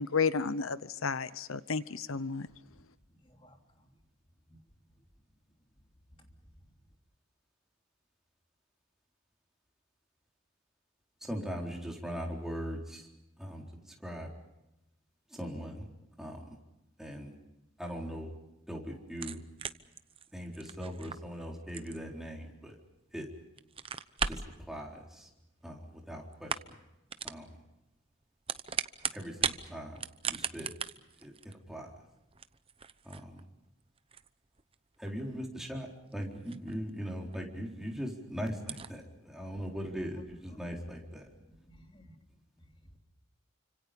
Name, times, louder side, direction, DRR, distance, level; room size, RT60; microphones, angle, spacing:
voice 1, 0.0-2.5, left 5 dB, 85° left, 0.9 m, -32 dB
voice 2, 3.2-3.9 4.5-4.6 6.6-6.7 40.5-40.7 41.7-42.2 42.6-42.7, equal, 25° left, 3.1 m, -58 dB
voice 3, 11.2-13.1 13.4-14.3 15.3-15.9 16.2-16.6 17.0-17.4 17.8-18.3 18.7-19.4 20.3-22.8 23.1-23.3 24.2-24.4 24.7-25.3 25.6-26.8 27.2-27.5 29.1-30.7 31.2-31.9 33.0-33.4 35.0-41.3, equal, ahead, 4.2 m, -40 dB
sound 1, 19.1-23.1 23.5-24.6 25.6-26.1 26.3-26.8 27.1-27.4 28.2-29.6 29.9-37.0 37.3-37.4 37.9-38.0 38.1-38.2 38.6-38.9, right 6 dB, 25° right, 0.8 m, -38 dB
29.5 x 26.0 x 5.3 m
head